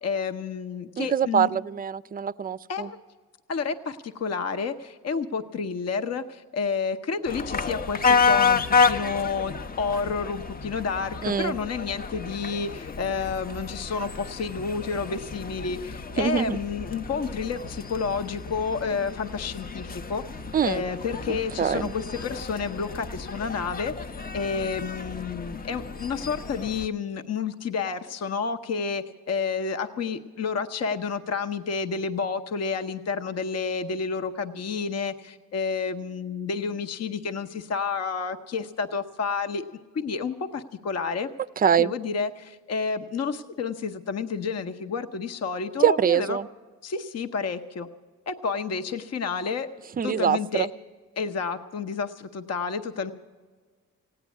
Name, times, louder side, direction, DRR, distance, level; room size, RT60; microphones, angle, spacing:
voice 1, 0.0-1.5 2.7-3.0 3.5-20.2 20.6-23.9 24.3-39.6 39.9-41.3 41.6-46.4 46.8-47.9 48.3-49.7 50.0-50.7 51.2-53.1, left 5 dB, 55° left, 9 dB, 0.8 m, -30 dB
voice 2, 1.0-2.9 11.2-11.6 16.2-16.6 20.5-20.8 21.3-21.9 41.6-41.9 45.8-46.5 50.0-50.7, right 8 dB, 30° right, 16 dB, 0.4 m, -24 dB
sound 1, 7.3-26.9, left 5 dB, 30° left, 0.6 m, -30 dB
16.5 x 9.7 x 8.2 m, 1.5 s
cardioid pair, 70°, 31 cm